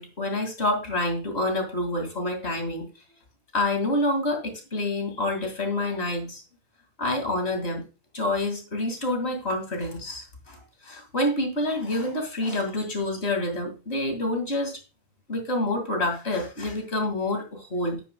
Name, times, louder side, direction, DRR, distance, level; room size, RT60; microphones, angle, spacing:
voice 1, 0.0-2.9 3.5-6.4 7.0-7.8 8.1-14.8 15.3-18.0, left 1 dB, 80° left, 5 dB, 2.5 m, -27 dB
9.9 x 9.3 x 2.2 m, 0.30 s
omnidirectional pair, 1.1 m